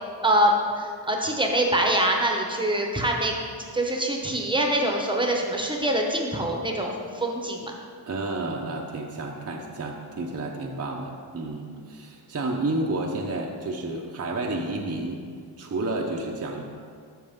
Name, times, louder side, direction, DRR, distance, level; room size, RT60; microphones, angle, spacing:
voice 1, 0.2-3.3 3.7-7.7, right 1 dB, 10° right, 1 dB, 1.0 m, -24 dB
voice 2, 8.1-15.2 15.6-16.6, right 2 dB, 35° right, 0 dB, 0.8 m, -30 dB
13.0 x 5.0 x 3.7 m, 2.1 s
wide cardioid pair, 115°, 46 cm